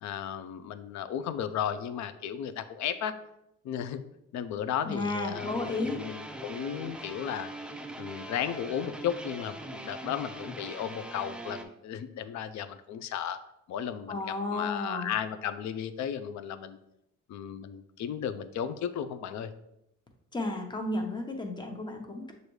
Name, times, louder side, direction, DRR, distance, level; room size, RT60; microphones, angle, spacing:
voice 1, 0.0-3.2 3.6-4.0 4.3-7.5 8.0-13.4 13.7-14.2 14.5-16.8 17.3-19.5, left 9 dB, 70° left, 12 dB, 0.5 m, -34 dB
voice 2, 4.8-6.0 14.1-15.1 20.3-22.3, left 2 dB, 15° left, 3 dB, 0.8 m, -33 dB
sound 1, 5.3-11.6, right 1 dB, 5° right, 0.4 m, -42 dB
6.4 x 2.6 x 3.1 m, 0.82 s
cardioid pair, 90°, 30 cm